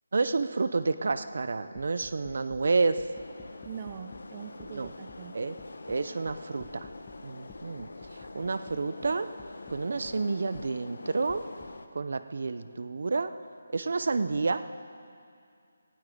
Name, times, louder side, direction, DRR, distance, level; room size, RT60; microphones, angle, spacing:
voice 1, 0.1-3.0 4.7-4.9 5.3-5.6 5.9-6.9 7.2-7.9 8.3-9.3 9.7-11.4 11.9-13.3 13.7-14.6, right 3 dB, 60° right, 12 dB, 0.8 m, -29 dB
sound 1, 1.1-1.3 1.7-2.6 3.0-4.3 4.6-5.2 5.6-7.2 7.5-10.2 10.5-10.7 11.3-11.7, left 5 dB, 15° left, 1.1 m, -52 dB
sound 2, 3.1-11.9, left 2 dB, 75° left, 1.0 m, -45 dB
voice 2, 3.6-5.3, right 7 dB, 25° right, 8 dB, 0.5 m, -42 dB
18.5 x 15.5 x 3.9 m, 2.3 s
figure-of-eight pair, 160°, 0 cm